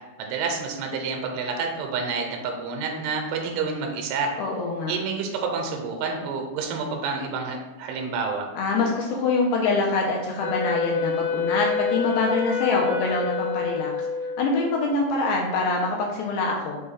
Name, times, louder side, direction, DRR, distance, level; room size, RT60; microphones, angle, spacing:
voice 1, 0.2-4.3 4.9-8.5, right 4 dB, 80° right, 2 dB, 2.4 m, -29 dB
voice 2, 4.4-4.9 8.6-13.9 14.4-16.8, left 3 dB, 80° left, -1 dB, 2.3 m, -24 dB
Wind instrument woodwind instrument, 10.4-14.7, left 5 dB, 60° left, 2.2 m, -28 dB
6.2 x 2.2 x 3.3 m, 1.2 s
omnidirectional pair, 4.7 m